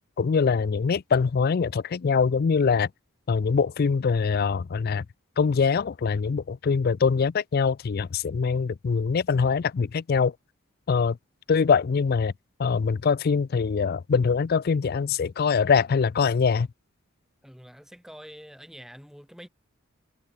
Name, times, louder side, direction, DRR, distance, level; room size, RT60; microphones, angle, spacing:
voice 1, 0.2-2.9 3.3-5.0 5.4-10.3 10.9-11.2 11.5-12.3 12.6-16.7, left 5 dB, 45° left, 0.4 m, -23 dB
voice 2, 17.4-19.5, equal, ahead, 4.6 m, -46 dB
head